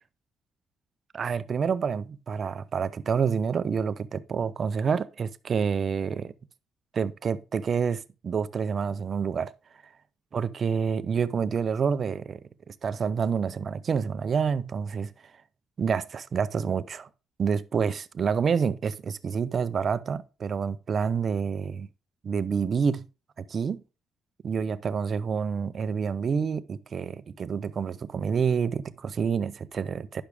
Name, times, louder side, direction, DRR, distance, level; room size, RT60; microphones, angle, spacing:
voice 1, 1.1-6.3 6.9-9.5 10.3-12.4 12.7-15.1 15.8-17.1 17.4-21.9 22.2-23.0 23.4-23.8 24.4-30.2, right 6 dB, 50° right, 0.6 m, -28 dB
10.0 x 6.1 x 3.4 m
cardioid pair, 90°, 0 cm